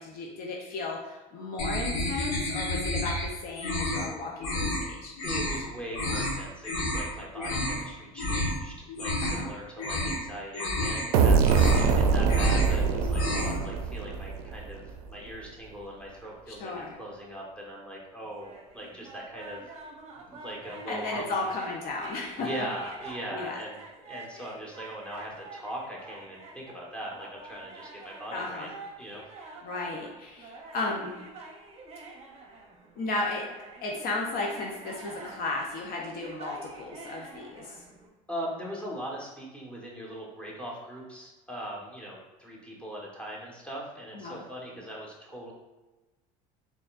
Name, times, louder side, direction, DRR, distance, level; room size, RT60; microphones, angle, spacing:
voice 1, 0.0-5.1 9.2-9.5 16.6-17.0 20.9-22.5 23.3-23.6 28.3-28.7 29.4-31.1 33.0-33.4 33.8-37.8 44.1-44.4, left 3 dB, 55° left, -1 dB, 0.7 m, -34 dB
sound 1, 1.6-3.3 3.6-4.1 4.4-4.8 5.2-5.6 5.9-6.3 6.6-7.0 7.3-7.8 8.2-8.5 8.9-9.5 9.8-10.2 10.5-11.0 11.4-11.9 12.2-12.7 13.0-13.6, left 1 dB, 75° left, 1.2 m, -30 dB
voice 2, 5.2-14.8 15.1-16.7 17.0-19.7 20.2-21.4 22.4-28.7 29.0-29.2 38.3-45.5, equal, 5° left, -4 dB, 1.2 m, -40 dB
sound 2, 11.1-14.8, right 5 dB, 85° right, 0.4 m, -23 dB
sound 3, 18.2-38.1, right 3 dB, 35° right, 0.8 m, -46 dB
4.0 x 3.5 x 2.4 m, 1.2 s
supercardioid pair, 95°, 19 cm